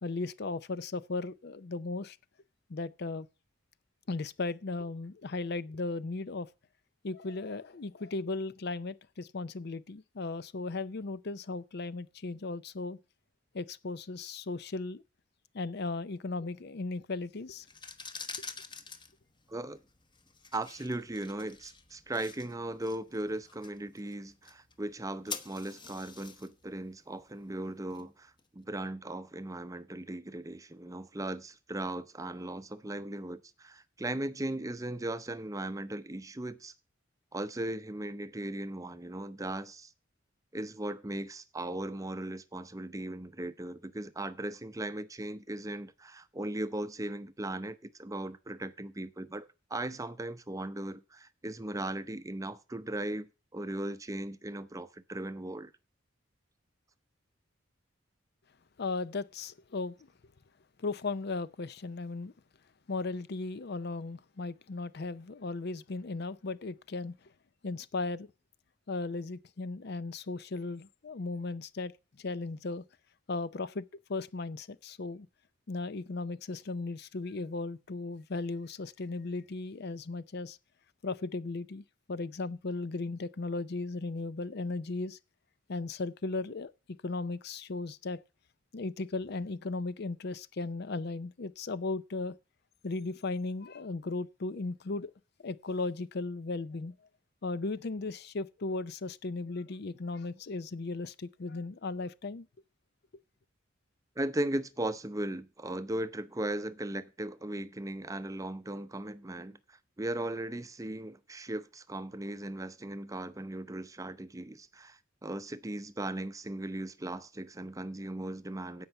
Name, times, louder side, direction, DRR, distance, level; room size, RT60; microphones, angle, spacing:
voice 1, 0.0-2.2 2.7-3.3 4.1-6.5 7.0-13.0 13.5-15.0 15.5-17.7 58.8-59.9 60.8-62.3 62.9-67.1 67.6-68.3 68.9-71.9 72.2-72.8 73.3-73.8 74.1-75.3 75.7-80.6 81.0-85.2 85.7-86.7 87.0-88.2 88.7-92.4 92.8-95.1 95.4-96.9 97.4-102.5, left 3 dB, 55° left, 0.5 m, -36 dB
sound 1, 17.6-28.4, left 5 dB, 25° left, 1.0 m, -47 dB
voice 2, 19.5-19.8 20.5-36.7 37.3-39.9 40.5-55.7 104.2-118.9, right 1 dB, 15° right, 0.6 m, -38 dB
15.5 x 5.6 x 5.8 m
head